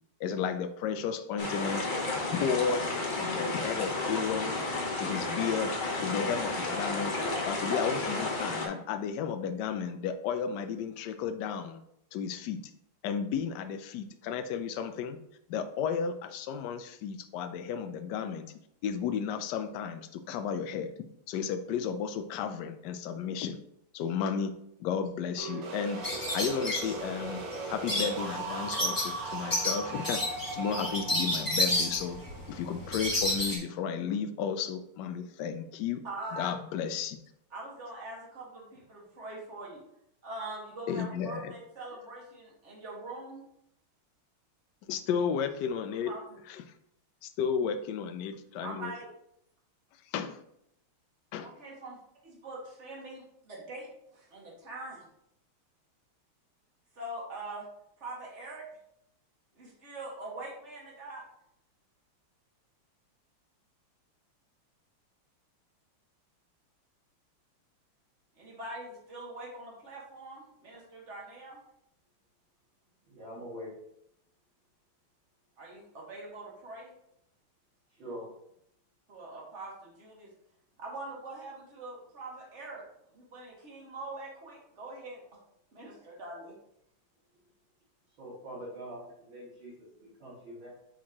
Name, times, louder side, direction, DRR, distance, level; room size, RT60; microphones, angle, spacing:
voice 1, 0.2-1.9 2.3-2.8 3.2-4.5 5.0-7.2 7.5-11.8 12.1-12.6 13.0-15.2 15.5-18.5 18.8-23.6 23.9-24.5 24.8-26.1 26.3-27.4 27.7-32.2 32.5-36.0 36.3-37.2 40.9-41.5 44.9-46.1 46.5-46.6 47.2-48.9 50.1-50.4 51.3-51.5, left 7 dB, 70° left, 9 dB, 1.0 m, -33 dB
sound 1, 1.4-8.7, left 2 dB, 45° left, 0.6 m, -32 dB
sound 2, 25.4-33.1, right 2 dB, 85° right, 2.1 m, -39 dB
sound 3, 26.0-33.6, left 1 dB, 10° left, 1.2 m, -31 dB
voice 2, 36.0-36.5 37.5-39.8 40.2-43.4 46.0-46.2 48.6-49.1 51.4-52.0 52.2-55.1 57.0-57.7 58.0-58.6 59.6-61.2 68.3-71.6 75.6-76.9 79.1-80.3 80.8-82.8 83.1-85.2 85.7-86.5, right 2 dB, 35° right, -3 dB, 2.0 m, -43 dB
voice 3, 73.1-73.7 78.0-78.3 88.2-90.7, equal, 65° right, -12 dB, 3.2 m, -44 dB
8.6 x 4.3 x 3.0 m, 0.75 s
omnidirectional pair, 2.4 m